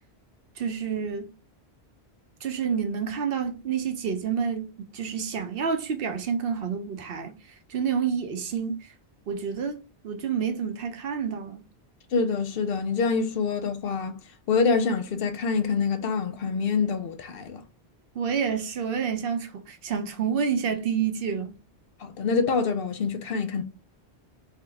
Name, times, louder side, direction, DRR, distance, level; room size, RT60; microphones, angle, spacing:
voice 1, 0.6-1.3 2.4-7.3 7.7-8.9 9.3-11.7 18.1-21.6, right 6 dB, 65° right, 0.8 m, -29 dB
voice 2, 12.1-14.2 14.5-17.6 22.0-23.6, left 5 dB, 65° left, 0.7 m, -26 dB
3.7 x 2.1 x 3.3 m
omnidirectional pair, 1.1 m